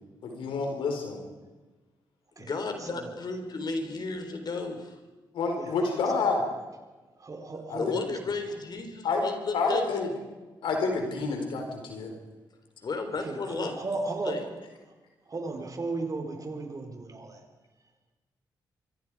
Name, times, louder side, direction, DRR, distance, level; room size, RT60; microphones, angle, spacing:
voice 1, 0.2-1.2 5.3-6.4 7.7-8.0 9.0-9.2 9.5-10.1 10.6-12.1, left 4 dB, 80° left, 3 dB, 4.6 m, -28 dB
voice 2, 2.4-5.0 7.7-9.9 12.8-13.8 14.2-14.4, left 3 dB, 55° left, 6 dB, 4.2 m, -33 dB
voice 3, 7.2-7.9 13.2-14.4 15.3-17.4, right 3 dB, 40° right, 4 dB, 4.4 m, -35 dB
24.5 x 24.0 x 5.0 m, 1.2 s
supercardioid pair, 55°, 9 cm